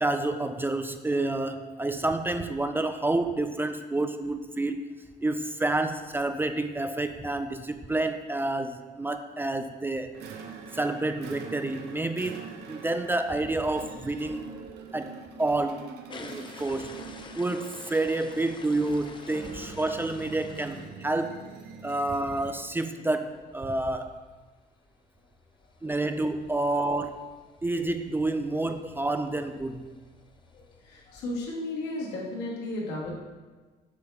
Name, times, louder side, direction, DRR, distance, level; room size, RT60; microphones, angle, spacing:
voice 1, 0.0-4.8 5.2-10.1 10.7-12.4 12.7-14.5 14.9-15.9 16.2-17.0 17.3-21.4 21.8-24.2 25.8-27.2 27.6-29.9, right 2 dB, 10° right, 8 dB, 0.4 m, -29 dB
sound 1, 10.1-22.7, right 5 dB, 80° right, 0.8 m, -44 dB
sound 2, 16.1-21.6 22.0-22.2 22.6-22.7 22.8-22.9 23.2-31.5, left 4 dB, 30° left, 0.6 m, -50 dB
voice 2, 30.5-33.1, left 2 dB, 90° left, -3 dB, 1.9 m, -34 dB
8.0 x 3.4 x 5.7 m, 1.3 s
cardioid pair, 110°, 17 cm